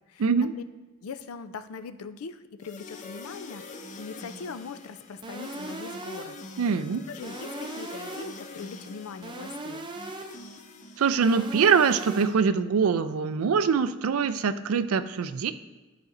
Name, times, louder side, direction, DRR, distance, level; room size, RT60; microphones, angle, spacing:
voice 1, 0.2-0.5 6.6-7.0 11.0-15.5, right 6 dB, 90° right, 12 dB, 0.4 m, -23 dB
voice 2, 1.0-6.4 7.1-9.9, left 5 dB, 85° left, 10 dB, 0.4 m, -41 dB
sound 1, 2.6-11.7, left 3 dB, 35° left, 0.5 m, -45 dB
sound 2, 5.2-6.5 7.2-8.5 9.2-10.5 11.2-12.5, right 2 dB, 20° right, 0.4 m, -39 dB
12.0 x 4.2 x 2.6 m, 1.2 s
head